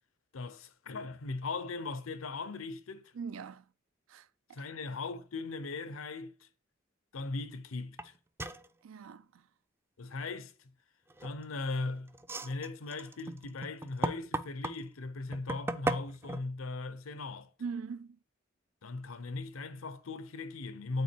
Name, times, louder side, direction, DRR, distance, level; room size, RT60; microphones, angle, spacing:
voice 1, 0.3-3.1 4.5-6.5 7.1-8.1 10.0-10.5 11.2-12.2 12.4-17.5 18.8-21.0, left 3 dB, 85° left, 0.7 m, -38 dB
voice 2, 3.1-3.7 4.1-4.7 8.8-9.5 17.6-18.2, right 5 dB, 85° right, 0.4 m, -42 dB
sound 1, 8.0-8.1 8.4-8.7 11.1-11.6 12.1-14.8 15.3-16.4, right 2 dB, 10° right, 0.3 m, -35 dB
8.5 x 3.7 x 4.4 m
head